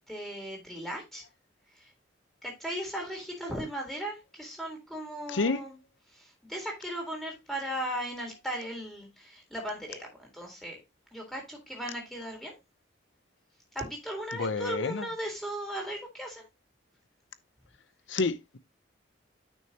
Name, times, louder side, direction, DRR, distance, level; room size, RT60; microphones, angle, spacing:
voice 1, 0.1-1.2 1.7-1.9 2.4-5.7 6.1-10.8 11.1-12.6 13.7-16.5, equal, ahead, 3.5 m, -37 dB
voice 2, 5.3-5.6 14.4-15.0 18.1-18.6, left 3 dB, 75° left, 0.7 m, -29 dB
9.0 x 6.3 x 2.9 m
head